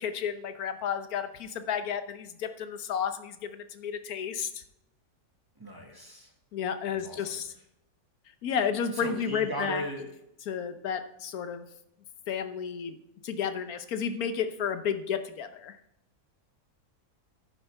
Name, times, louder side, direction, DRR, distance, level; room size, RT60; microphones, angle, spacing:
voice 1, 0.0-4.6 6.5-7.5 8.4-9.8 10.5-11.7 12.3-13.0 13.2-15.8, left 7 dB, 75° left, 9 dB, 1.3 m, -32 dB
voice 2, 5.6-6.3 6.9-7.4 8.9-10.1, equal, 15° right, 0 dB, 1.6 m, -37 dB
10.5 x 9.7 x 3.4 m, 0.79 s
omnidirectional pair, 1.6 m